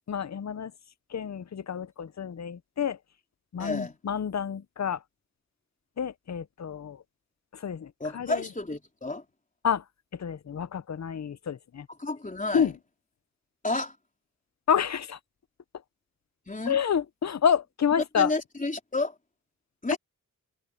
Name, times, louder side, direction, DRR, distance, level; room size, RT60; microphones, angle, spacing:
voice 1, 0.1-0.7 1.1-3.0 3.5-5.0 6.0-7.0 7.5-8.5 9.6-9.8 10.2-11.9 12.5-12.7 14.7-15.2 16.7-18.3 19.9-20.0, left 7 dB, 55° left, 0.8 m, -28 dB
voice 2, 3.6-4.0 8.0-9.2 12.0-12.7 13.6-14.0 16.5-16.8 18.2-19.1 19.8-20.0, left 2 dB, 25° left, 3.9 m, -31 dB
wide cardioid pair, 95°, 33 cm